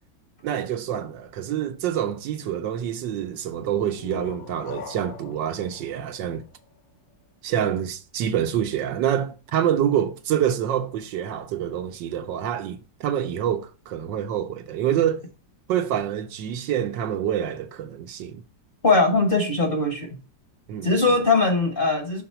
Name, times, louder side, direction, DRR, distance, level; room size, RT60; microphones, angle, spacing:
voice 1, 0.4-6.4 7.4-15.3 15.7-18.4 20.7-21.0, right 10 dB, 75° right, 1.3 m, -26 dB
sound 1, 3.7-7.3, left 7 dB, 75° left, 1.5 m, -43 dB
voice 2, 18.8-20.1 20.8-22.2, left 3 dB, 40° left, 0.9 m, -20 dB
6.0 x 3.9 x 5.6 m
omnidirectional pair, 2.1 m